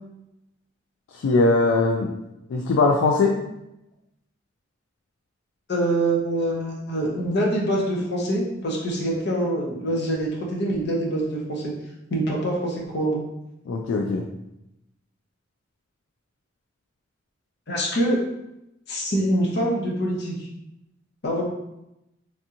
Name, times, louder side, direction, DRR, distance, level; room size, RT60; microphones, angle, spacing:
voice 1, 1.1-2.1 2.5-3.4 13.7-14.2, left 3 dB, 85° left, 1 dB, 0.3 m, -20 dB
voice 2, 5.7-11.7 12.1-13.2 17.7-18.2 18.9-20.4 21.2-21.4, right 1 dB, 60° left, -2 dB, 0.8 m, -25 dB
3.4 x 2.8 x 2.5 m, 0.87 s
head